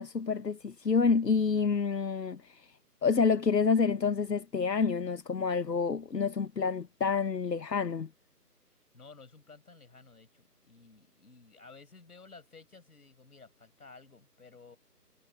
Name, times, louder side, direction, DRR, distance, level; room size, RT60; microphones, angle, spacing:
voice 1, 0.0-2.7 3.0-8.1, left 5 dB, 85° left, 1.1 m, -28 dB
voice 2, 8.9-14.8, left 4 dB, 65° left, 5.1 m, -54 dB
figure-of-eight pair, 155°, 48 cm